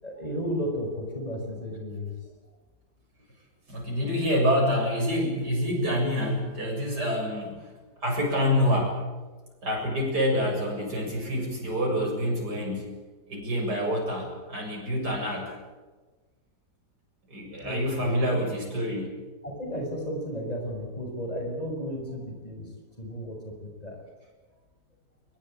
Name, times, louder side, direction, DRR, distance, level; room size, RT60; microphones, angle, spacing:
voice 1, 0.0-2.1 17.6-18.4 19.4-22.7 23.0-24.1, equal, 25° left, 3 dB, 6.3 m, -33 dB
voice 2, 3.7-7.7 8.0-9.0 9.6-12.9 13.3-15.5 17.3-19.1, equal, 85° right, 0 dB, 8.0 m, -27 dB
22.5 x 22.0 x 9.0 m, 1.3 s
omnidirectional pair, 1.7 m